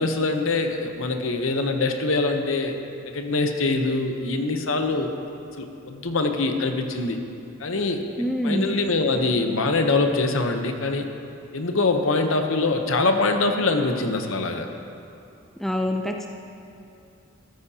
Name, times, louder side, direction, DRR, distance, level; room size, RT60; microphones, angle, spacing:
voice 1, 0.0-2.7 3.1-5.1 5.6-7.2 7.6-8.0 8.4-11.1 11.5-14.7, left 3 dB, 65° left, 5 dB, 0.9 m, -24 dB
voice 2, 8.2-8.7 15.6-16.3, left 1 dB, ahead, 3 dB, 0.4 m, -25 dB
14.0 x 13.0 x 2.8 m, 2.7 s
head